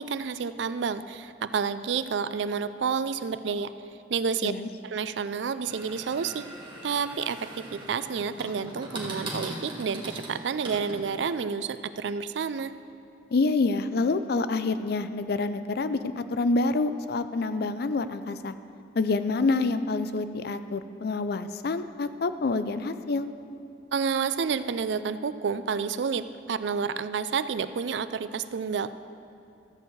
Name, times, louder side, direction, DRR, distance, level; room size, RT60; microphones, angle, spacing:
voice 1, 0.0-3.7 4.1-4.5 4.8-6.5 6.8-12.7 23.9-28.9, right 6 dB, 80° right, 13 dB, 0.4 m, -30 dB
sound 1, 5.7-11.4, right 1 dB, 30° right, 1.6 m, -40 dB
voice 2, 13.3-18.5 19.0-23.3, left 3 dB, 60° left, 11 dB, 0.5 m, -27 dB
13.5 x 4.6 x 7.9 m, 2.6 s
head